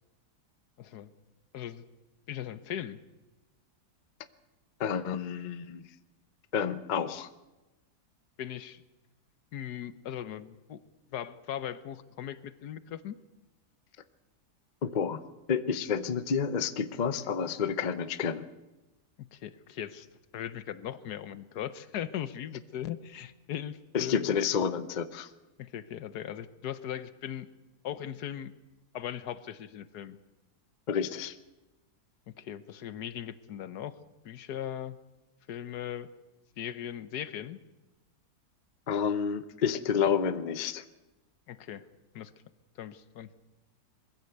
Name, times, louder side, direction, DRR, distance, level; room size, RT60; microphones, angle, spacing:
voice 1, 0.8-1.1 1.5-1.8 2.3-3.0 8.4-8.8 9.5-10.8 11.1-13.2 19.3-20.1 20.3-24.4 25.6-27.5 27.8-28.5 28.9-30.2 32.3-34.0 34.2-35.0 35.5-36.1 36.6-37.6 41.5-41.8 42.1-42.3 42.8-43.3, left 10 dB, 75° left, 15 dB, 1.4 m, -39 dB
voice 2, 4.8-5.8 6.5-7.3 14.8-15.2 15.5-18.4 23.9-25.3 30.9-31.4 38.9-40.8, left 7 dB, 40° left, 12 dB, 0.7 m, -29 dB
22.0 x 15.0 x 8.0 m, 1.1 s
omnidirectional pair, 1.8 m